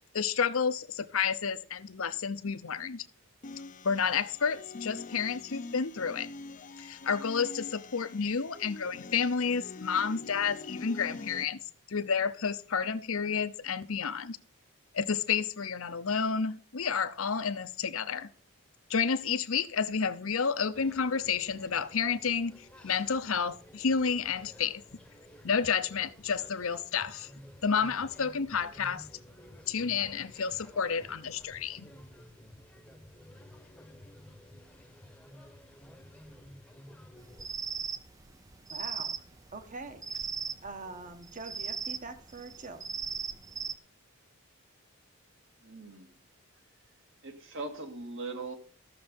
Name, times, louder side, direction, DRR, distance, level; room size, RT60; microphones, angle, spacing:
voice 1, 0.1-3.0 3.8-6.3 6.8-11.6 11.9-14.4 14.9-18.3 18.9-24.8 25.4-27.3 27.6-29.1 29.7-31.9, left 6 dB, 70° left, 0.8 m, -30 dB
sound 1, 3.4-11.4, left 3 dB, 35° left, 0.6 m, -44 dB
sound 2, 20.7-37.5, left 1 dB, 5° left, 1.0 m, -53 dB
sound 3, 37.2-43.7, right 6 dB, 15° right, 0.4 m, -38 dB
voice 2, 38.7-39.2 39.5-40.3 40.6-42.9, right 3 dB, 35° right, 1.3 m, -44 dB
voice 3, 45.6-46.1 47.2-48.5, right 3 dB, 60° right, 2.1 m, -40 dB
14.0 x 6.7 x 5.2 m
head